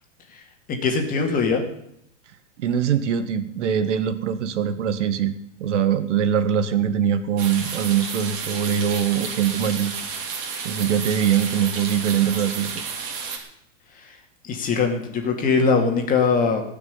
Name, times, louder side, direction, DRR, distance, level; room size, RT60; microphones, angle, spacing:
voice 1, 0.7-1.6 14.4-16.6, left 5 dB, 20° left, 3 dB, 2.5 m, -21 dB
voice 2, 2.6-5.4 5.6-9.9 10.6-12.8, right 8 dB, 65° right, 10 dB, 1.7 m, -22 dB
sound 1, 7.4-13.4, right 5 dB, 40° right, 3.8 m, -31 dB
18.0 x 6.2 x 9.7 m, 0.74 s
supercardioid pair, 150°, 38 cm